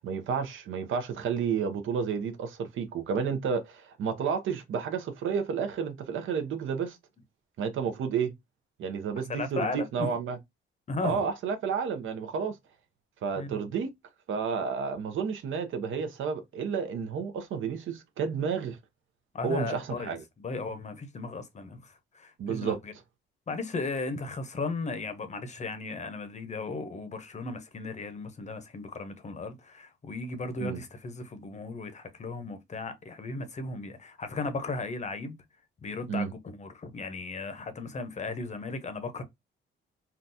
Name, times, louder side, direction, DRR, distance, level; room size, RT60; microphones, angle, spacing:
voice 1, 0.0-7.0 7.6-8.3 8.8-10.4 11.0-12.6 13.2-13.9 14.3-18.8 19.4-20.2 22.4-22.8 30.6-30.8 36.1-36.3, right 6 dB, 70° right, 0.7 m, -31 dB
voice 2, 9.3-10.1 10.9-11.3 13.4-13.6 19.3-20.1 20.4-22.9 23.5-35.4 35.8-39.2, left 3 dB, 35° left, 0.7 m, -36 dB
3.8 x 2.3 x 2.6 m
cardioid pair, 120°, 21 cm